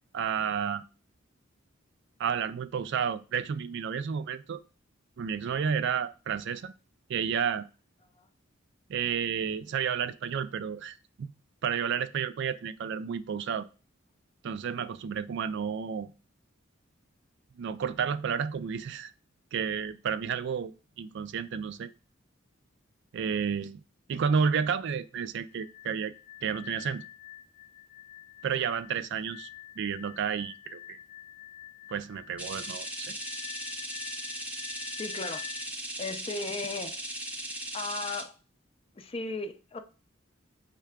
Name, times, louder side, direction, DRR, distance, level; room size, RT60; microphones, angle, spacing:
voice 1, 0.1-0.8 2.2-4.6 5.2-6.7 7.1-7.7 8.9-11.3 11.6-13.7 14.4-16.1 17.6-19.1 19.5-20.7 21.0-21.9 23.1-23.8 24.1-26.1 26.4-27.0 28.4-29.5 29.8-31.0 31.9-33.1, right 7 dB, 65° right, 0.4 m, -31 dB
sound 1, 25.5-35.7, left 13 dB, 75° left, 0.6 m, -47 dB
sound 2, 32.4-38.2, right 1 dB, 5° right, 0.7 m, -38 dB
voice 2, 35.0-35.5 36.0-37.0 37.7-38.3 38.9-39.8, left 3 dB, 30° left, 0.5 m, -36 dB
4.7 x 3.3 x 3.5 m
head